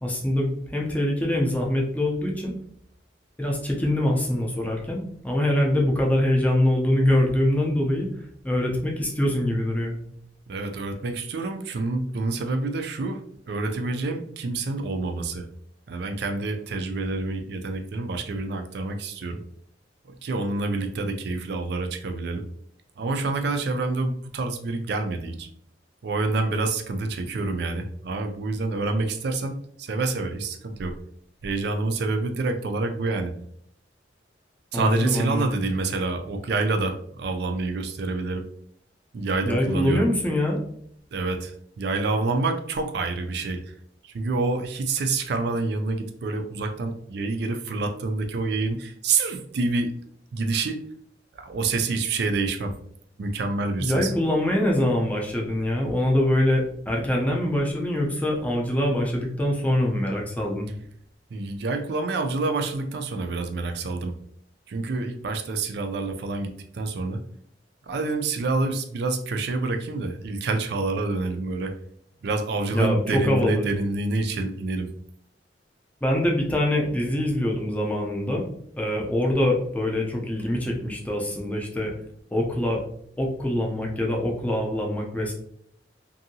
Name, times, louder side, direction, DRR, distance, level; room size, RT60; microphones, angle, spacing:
voice 1, 0.0-2.5 3.4-8.1 8.4-10.0 34.7-35.5 39.4-40.6 53.8-60.7 72.7-73.7 76.0-78.5 78.8-81.9 82.3-82.8 83.2-85.3, left 1 dB, 10° left, -1 dB, 0.5 m, -24 dB
voice 2, 10.5-15.5 15.9-19.4 20.2-22.4 23.0-25.5 26.0-31.0 31.4-33.3 34.7-38.5 39.1-40.1 41.1-43.7 44.0-49.9 50.3-50.8 51.3-52.7 53.2-54.1 61.3-64.1 64.7-67.2 67.8-71.7 72.2-74.9, right 3 dB, 60° right, 6 dB, 0.4 m, -27 dB
2.7 x 2.7 x 2.7 m, 0.67 s
head